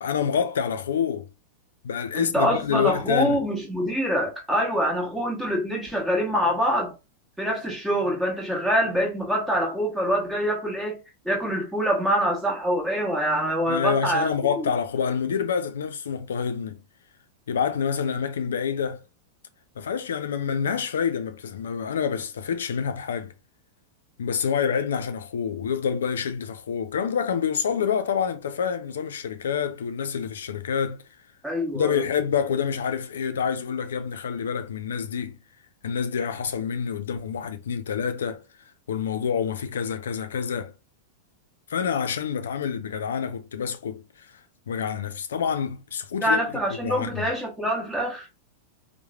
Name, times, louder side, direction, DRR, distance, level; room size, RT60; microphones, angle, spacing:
voice 1, 0.0-1.3 1.8-3.4 13.7-16.8 17.5-19.0 19.8-23.3 24.2-31.0 31.7-35.4 35.8-38.4 38.9-40.7 41.7-44.3 44.7-46.5 46.8-47.3, left 7 dB, 90° left, 0.4 m, -27 dB
voice 2, 2.1-7.0 7.4-11.0 11.2-14.7 31.4-32.0 46.2-48.3, equal, 5° right, 1.2 m, -25 dB
3.0 x 2.0 x 2.3 m
hypercardioid pair, 120°, 0 cm